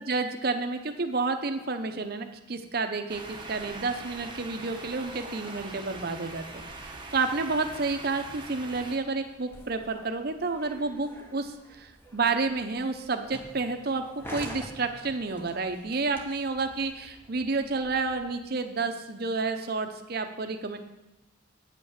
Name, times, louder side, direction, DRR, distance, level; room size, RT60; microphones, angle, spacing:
voice 1, 0.0-14.0 14.3-20.8, right 3 dB, 50° right, 7 dB, 0.7 m, -30 dB
sound 1, 3.1-9.0, right 2 dB, 25° right, 1.0 m, -42 dB
sound 2, 5.1-18.3, equal, 10° left, 1.0 m, -49 dB
9.1 x 5.6 x 6.4 m, 1.0 s
head